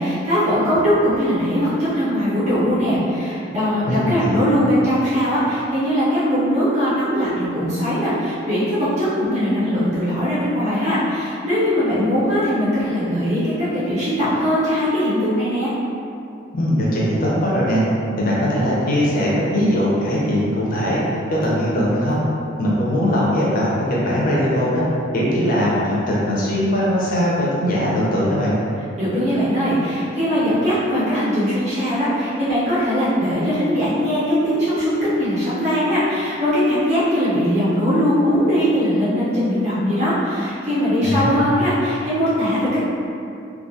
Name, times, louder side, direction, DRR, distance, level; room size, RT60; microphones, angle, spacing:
voice 1, 0.0-15.7 29.0-42.8, equal, 35° right, -12 dB, 0.7 m, -20 dB
voice 2, 3.9-4.5 16.5-17.8 18.2-21.0 21.3-22.2 22.6-24.8 25.1-28.6 41.0-41.4, equal, 45° left, -6 dB, 0.5 m, -20 dB
2.3 x 2.3 x 2.6 m, 2.6 s
head